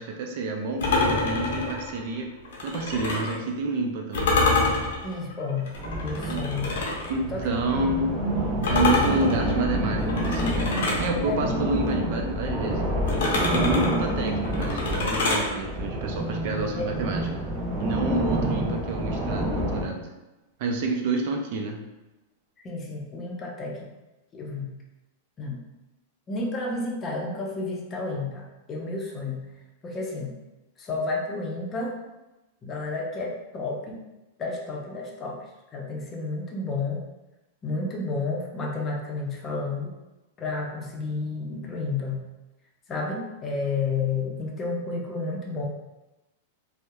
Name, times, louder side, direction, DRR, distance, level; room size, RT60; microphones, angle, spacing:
voice 1, 0.0-2.3 2.6-4.4 6.3-6.4 7.1-8.1 8.7-12.8 13.5-17.3 17.8-20.1 20.6-21.8, right 3 dB, 55° right, 2 dB, 0.4 m, -29 dB
sound 1, 0.8-3.4 4.1-7.1 8.6-11.1 13.1-15.5, left 3 dB, 75° left, 0.6 m, -26 dB
voice 2, 5.0-6.7 7.3-7.4 7.7-7.8 8.6-9.0 11.2-11.5 13.8-13.9 16.8-17.1 18.7-18.8 22.6-23.9 24.3-24.7 25.4-25.6 26.3-29.5 29.8-30.4 30.8-32.0 32.6-34.0 34.4-35.4 35.7-37.0 37.6-40.0 40.4-42.3 42.9-45.7, left 3 dB, 25° left, -1 dB, 0.5 m, -31 dB
sound 2, 5.7-19.8, right 1 dB, 25° right, 0.7 m, -28 dB
2.7 x 2.0 x 2.2 m, 1.0 s
hypercardioid pair, 125°, 0 cm